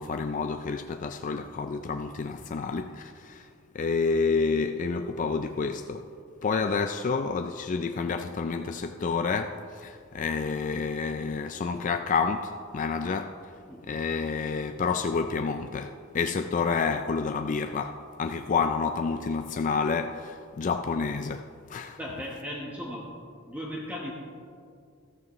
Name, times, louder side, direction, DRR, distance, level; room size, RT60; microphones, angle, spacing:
voice 1, 0.0-3.5 3.7-6.0 6.4-13.4 13.9-22.0, left 5 dB, 40° left, 0.4 m, -29 dB
voice 2, 22.0-23.1 23.5-24.1, left 1 dB, 10° right, 1.1 m, -36 dB
13.5 x 13.5 x 3.1 m
head